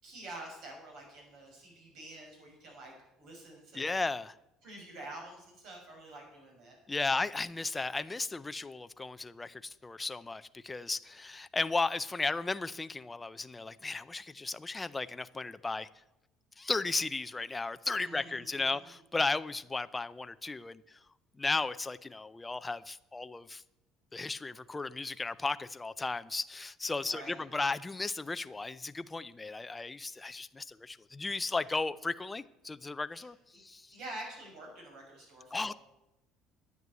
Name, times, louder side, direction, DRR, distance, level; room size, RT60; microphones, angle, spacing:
voice 1, 0.0-4.0 4.6-6.8 18.0-18.9 27.0-27.4 33.2-33.6 33.9-35.8, right 1 dB, 55° right, 6.3 m, -48 dB
voice 2, 3.7-4.3 6.9-15.9 16.6-21.0 21.4-23.6 24.1-34.0 35.5-35.7, left 3 dB, 15° left, 0.4 m, -35 dB
11.0 x 9.4 x 8.3 m
cardioid pair, 135°, 0 cm